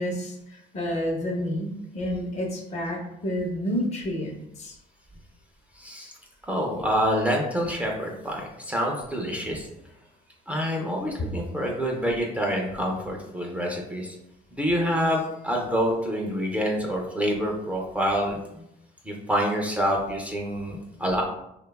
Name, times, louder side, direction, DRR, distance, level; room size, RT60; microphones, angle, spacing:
voice 1, 0.0-4.8, equal, 40° left, 2 dB, 0.6 m, -30 dB
voice 2, 5.8-6.2 6.5-9.7 10.5-14.2 14.5-18.7 19.0-21.2, equal, 10° right, -1 dB, 0.4 m, -27 dB
2.7 x 2.2 x 2.2 m, 0.84 s
cardioid pair, 110°, 17 cm